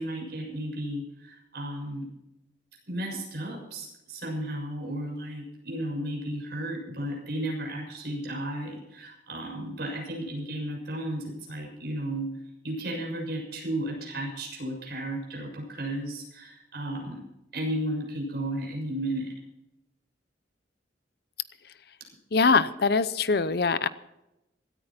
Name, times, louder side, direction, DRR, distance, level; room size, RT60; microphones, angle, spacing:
voice 1, 0.0-2.1 2.9-12.3 12.6-17.2 17.5-19.3, right 1 dB, 60° right, 0 dB, 6.7 m, -34 dB
voice 2, 22.3-23.9, left 4 dB, 55° left, 14 dB, 0.7 m, -23 dB
17.5 x 14.0 x 4.3 m, 0.91 s
head